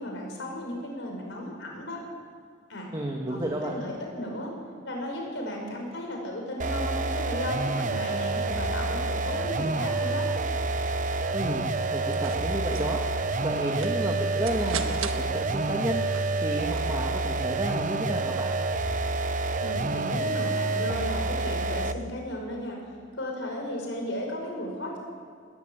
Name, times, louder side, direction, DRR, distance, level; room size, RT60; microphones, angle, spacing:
voice 1, 0.0-2.0 2.7-2.9 3.3-4.5 4.8-10.3 19.6-22.8 23.1-25.0, left 1 dB, 65° left, 1 dB, 5.9 m, -35 dB
voice 2, 2.9-3.8 11.3-11.6 11.9-13.0 13.4-16.0 16.4-18.5, right 1 dB, 20° right, 0 dB, 1.7 m, -31 dB
sound 1, 6.6-22.1, right 3 dB, 40° right, 0.7 m, -28 dB
sound 2, 11.9-17.1, right 6 dB, 85° right, 1.4 m, -41 dB
20.5 x 14.0 x 9.1 m, 2.2 s
head